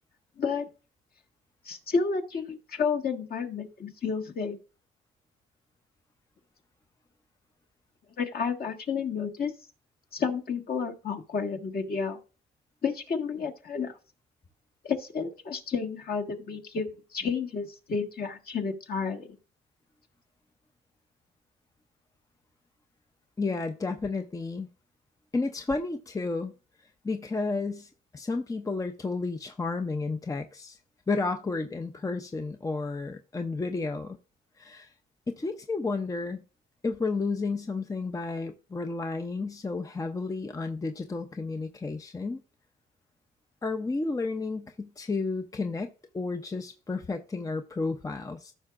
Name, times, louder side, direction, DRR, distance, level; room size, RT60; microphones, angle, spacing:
voice 1, 1.6-4.6 8.2-9.5 10.1-12.2 12.8-13.9 14.8-19.3, left 5 dB, 50° left, 1.6 m, -31 dB
voice 2, 23.4-24.7 25.3-26.5 27.0-30.8 31.1-34.2 34.6-34.9 35.3-36.4 36.8-42.4 43.6-48.5, left 3 dB, 15° left, 0.6 m, -32 dB
14.5 x 5.8 x 2.5 m
cardioid pair, 90°, 20 cm